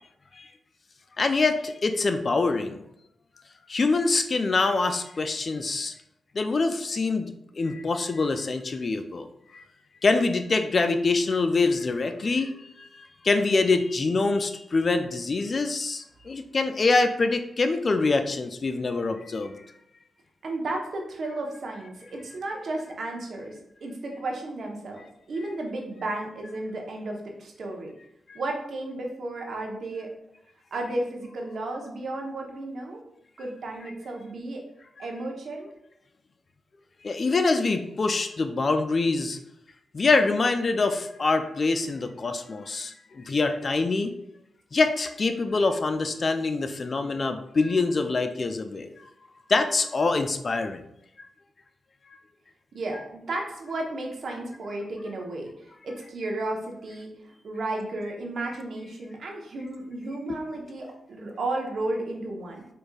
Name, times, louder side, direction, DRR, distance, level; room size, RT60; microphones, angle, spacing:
voice 1, 1.2-2.8 3.7-5.9 6.3-9.3 9.5-9.6 10.0-19.6 28.3-28.4 37.0-39.4 39.9-44.1 44.7-48.9 49.5-50.8 60.3-60.4, left 3 dB, 50° left, 8 dB, 0.4 m, -25 dB
voice 2, 20.4-25.0 25.3-27.9 28.3-30.1 30.7-33.0 33.4-34.6 35.0-35.7 52.7-57.1 57.4-62.7, right 2 dB, 70° right, 0 dB, 0.8 m, -33 dB
4.6 x 2.6 x 2.3 m, 0.78 s
supercardioid pair, 50°, 0 cm